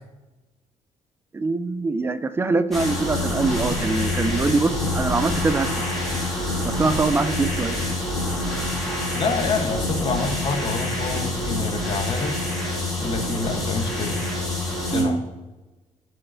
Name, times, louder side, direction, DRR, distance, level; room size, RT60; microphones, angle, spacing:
voice 1, 1.3-5.7 6.6-7.8 14.9-15.2, right 3 dB, 20° right, 11 dB, 0.4 m, -23 dB
sound 1, 2.7-15.0, left 1 dB, ahead, 2.4 m, -26 dB
voice 2, 9.1-12.3 13.0-14.2 14.8-15.2, left 4 dB, 40° left, 5 dB, 0.9 m, -27 dB
12.5 x 4.5 x 2.5 m, 1.2 s
cardioid pair, 150°, 13 cm